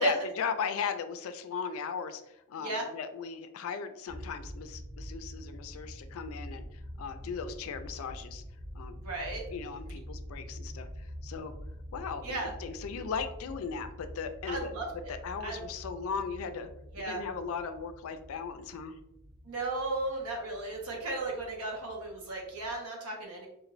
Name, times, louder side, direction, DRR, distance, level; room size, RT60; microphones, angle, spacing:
voice 1, 0.0-2.2 2.5-6.6 7.0-8.4 8.7-9.0 9.5-10.9 11.2-11.5 11.9-14.7 15.1-16.7 17.0-19.0, left 6 dB, 70° left, 8 dB, 0.3 m, -37 dB
sound 1, 4.1-22.8, equal, 50° right, 0.8 m, -46 dB
voice 2, 8.9-9.4 12.2-12.5 14.5-15.1 15.4-15.7 16.9-17.2 19.4-23.5, right 2 dB, 85° right, -1 dB, 0.8 m, -35 dB
3.0 x 2.5 x 2.4 m, 0.84 s
head